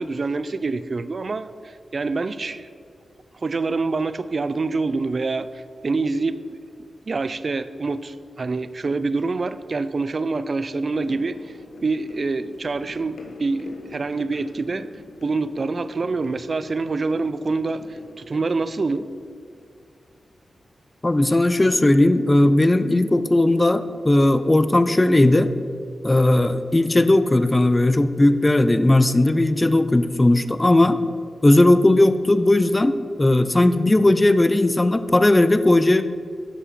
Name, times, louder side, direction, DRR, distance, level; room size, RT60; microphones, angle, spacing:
voice 1, 0.0-2.7 3.3-6.4 7.1-14.9 15.2-19.1, right 3 dB, 55° right, 14 dB, 0.4 m, -26 dB
sound 1, 10.8-20.2 20.5-20.6, left 2 dB, 80° left, 1.3 m, -43 dB
voice 2, 21.0-25.5 26.0-31.0 31.4-36.0, left 1 dB, 25° left, 12 dB, 0.5 m, -17 dB
8.1 x 6.0 x 6.0 m, 2.2 s
cardioid pair, 45°, 0 cm